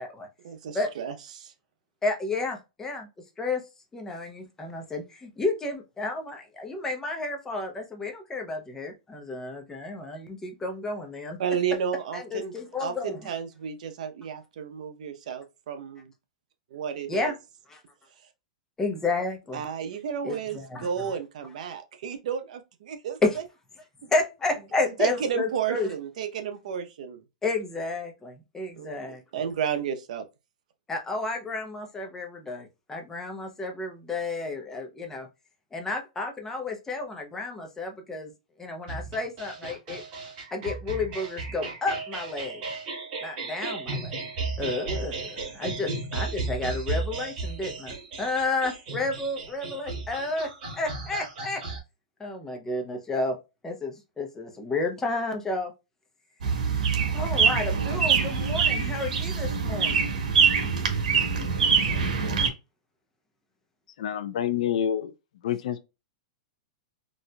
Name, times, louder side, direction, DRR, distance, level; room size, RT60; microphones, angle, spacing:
voice 1, 0.4-1.5 11.4-12.5 12.8-16.1 16.7-17.3 19.5-23.2 25.0-27.2 28.7-28.9 29.3-30.2, right 7 dB, 70° right, 0.7 m, -32 dB
voice 2, 2.0-3.1 3.4-3.6 3.9-11.4 12.1-13.3 17.1-17.3 17.7-17.8 18.8-19.6 20.2-20.9 23.2-23.4 24.1-25.9 27.4-29.2 30.9-35.3 35.7-38.3 38.6-40.0 40.5-42.6 43.2-44.2 44.6-51.6 52.2-53.4 53.6-55.7 57.1-60.1, left 2 dB, 10° left, 0.7 m, -31 dB
sound 1, 38.9-51.8, right 3 dB, 40° right, 2.1 m, -35 dB
sound 2, 56.4-62.5, right 6 dB, 90° right, 1.0 m, -24 dB
voice 3, 64.0-65.1 65.4-65.8, left 9 dB, 70° left, 0.5 m, -27 dB
4.1 x 2.5 x 2.2 m
supercardioid pair, 150°, 4 cm